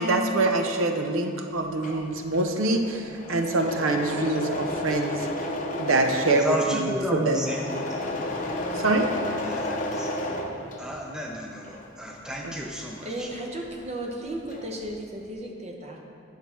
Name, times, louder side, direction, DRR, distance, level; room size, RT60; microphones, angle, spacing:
voice 1, 0.0-5.3 5.8-7.4 8.7-9.1 12.4-12.6, right 2 dB, 85° right, 0.6 m, -25 dB
Engine / Mechanisms, 1.6-11.2 11.5-13.9 14.1-14.8, left 1 dB, 40° left, 0.7 m, -32 dB
voice 2, 6.4-8.0 9.4-10.1 10.8-13.3, equal, 5° right, 0.5 m, -32 dB
voice 3, 13.0-16.0, right 1 dB, 30° right, 0.9 m, -35 dB
9.0 x 5.7 x 4.3 m
head